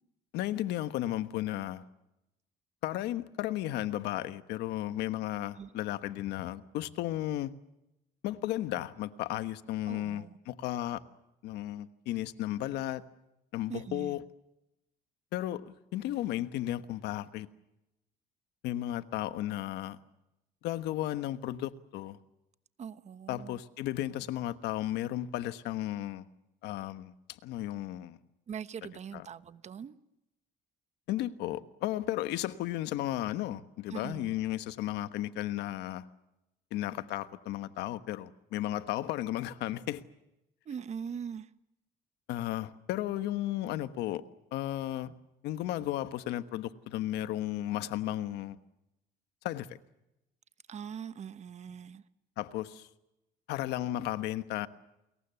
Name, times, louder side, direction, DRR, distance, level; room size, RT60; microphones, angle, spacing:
voice 1, 0.3-1.8 2.8-7.5 8.2-11.0 11.4-13.0 13.5-14.2 15.3-17.5 18.6-20.0 20.6-22.2 23.3-26.3 26.6-28.2 29.1-29.2 31.1-36.1 36.7-40.0 42.3-44.2 44.5-45.1 45.4-48.6 49.4-49.7 52.4-52.9 53.5-54.7, left 14 dB, 85° left, 1.3 m, -34 dB
voice 2, 9.9-10.4 13.7-14.2 22.8-23.6 28.5-30.0 33.9-34.3 40.6-41.5 50.7-52.0, right 7 dB, 40° right, 1.2 m, -42 dB
30.0 x 22.5 x 6.9 m
cardioid pair, 110°, 17 cm